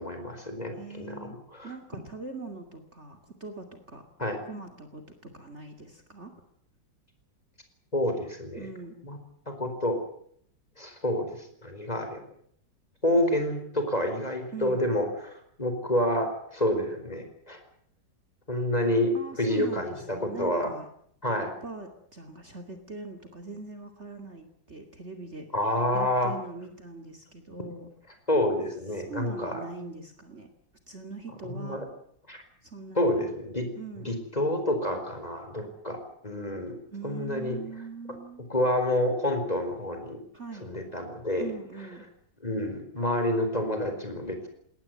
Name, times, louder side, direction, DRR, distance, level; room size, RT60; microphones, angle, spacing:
voice 1, 0.0-1.7 4.2-4.4 7.9-8.7 9.0-9.2 9.5-10.0 10.8-12.2 13.0-17.6 18.5-20.7 21.2-21.5 25.5-26.4 28.3-29.6 31.4-31.9 32.3-32.4 33.0-33.7 34.0-36.8 37.0-37.6 38.5-40.2 40.6-41.5 42.4-44.5, left 1 dB, 20° left, 6 dB, 4.6 m, -28 dB
voice 2, 0.7-1.4 1.6-4.0 4.5-6.3 8.6-8.9 14.5-14.8 19.1-20.9 21.5-25.5 25.9-27.9 29.0-30.5 30.9-31.8 32.6-33.3 33.7-34.2 36.9-38.4 40.3-40.7 41.4-42.0, right 3 dB, 35° right, 5 dB, 2.8 m, -42 dB
21.0 x 18.5 x 9.3 m, 0.66 s
omnidirectional pair, 2.0 m